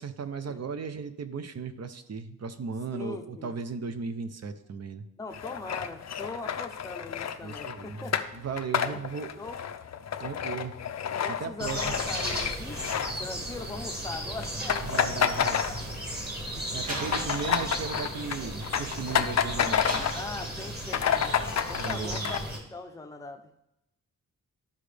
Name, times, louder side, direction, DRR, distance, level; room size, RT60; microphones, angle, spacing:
voice 1, 0.0-5.0 7.4-8.0 8.4-9.3 10.2-10.7 11.3-11.9 14.8-15.6 16.7-20.0 21.7-22.4, right 5 dB, 50° right, 10 dB, 0.7 m, -36 dB
voice 2, 2.9-3.5 5.2-8.2 8.9-9.6 11.2-12.8 13.2-15.3 15.7-15.8 16.6-16.9 20.1-23.5, left 3 dB, 10° left, 4 dB, 0.6 m, -41 dB
sound 1, 5.3-13.7 14.0-14.2 14.4-16.2 16.5-20.3 20.6-20.7 20.9-22.4, left 8 dB, 55° left, 0.5 m, -30 dB
sound 2, 11.6-22.6, right 1 dB, 30° right, 1.8 m, -36 dB
Slam, 16.8-19.3 19.8-21.1, right 1 dB, 80° right, 2.9 m, -40 dB
12.5 x 5.1 x 3.3 m, 0.84 s
wide cardioid pair, 150°, 33 cm